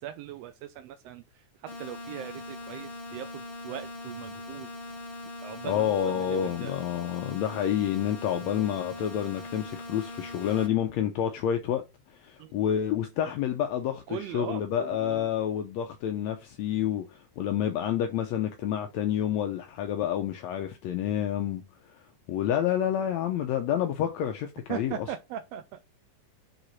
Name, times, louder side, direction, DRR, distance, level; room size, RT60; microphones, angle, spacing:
voice 1, 0.0-4.7 5.4-6.7 12.4-12.6 14.1-15.3 24.7-25.8, right 11 dB, 75° right, 1.5 m, -40 dB
sound 1, 1.7-10.7, left 2 dB, 35° left, 3.3 m, -41 dB
voice 2, 5.6-11.9 12.2-25.1, left 10 dB, 75° left, 1.9 m, -29 dB
8.1 x 3.6 x 4.1 m
omnidirectional pair, 3.4 m